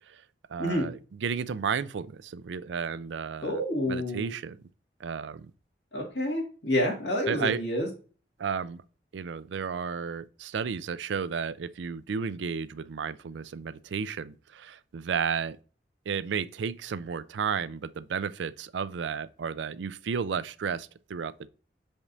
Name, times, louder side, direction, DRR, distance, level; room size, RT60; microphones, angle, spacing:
voice 1, 0.5-4.6 5.0-5.5 7.3-7.6 8.4-8.8 9.1-15.6 16.1-21.5, right 6 dB, 90° right, 0.4 m, -33 dB
voice 2, 3.4-4.3 5.9-7.9, left 1 dB, 80° left, 2.1 m, -28 dB
7.1 x 5.1 x 2.6 m
head